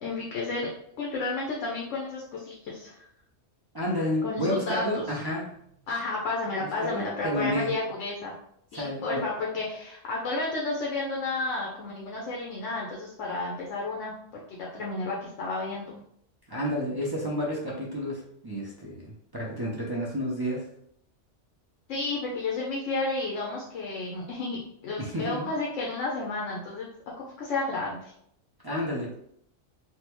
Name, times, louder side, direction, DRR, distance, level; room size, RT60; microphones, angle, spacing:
voice 1, 0.0-3.1 4.2-5.0 5.9-8.4 8.7-15.9 21.9-26.9 27.2-28.1, left 3 dB, 80° left, -3 dB, 1.0 m, -32 dB
voice 2, 3.7-5.6 6.8-7.7 8.7-9.3 16.5-20.7 25.0-25.5 28.6-29.1, equal, 40° right, -6 dB, 0.3 m, -30 dB
3.4 x 2.1 x 3.0 m, 0.70 s
omnidirectional pair, 1.3 m